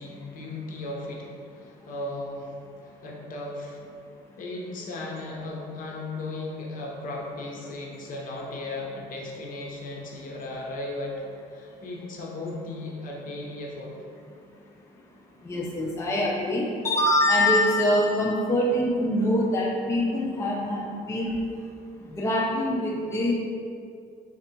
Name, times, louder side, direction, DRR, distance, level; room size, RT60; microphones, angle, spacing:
voice 1, 0.0-2.5 2.8-3.8 4.4-11.2 11.5-14.0, left 2 dB, 55° left, -2 dB, 0.8 m, -36 dB
voice 2, 15.4-21.3 22.1-23.3, left 1 dB, 15° left, -3 dB, 0.5 m, -24 dB
3.5 x 2.4 x 4.3 m, 2.3 s
cardioid pair, 110°, 17 cm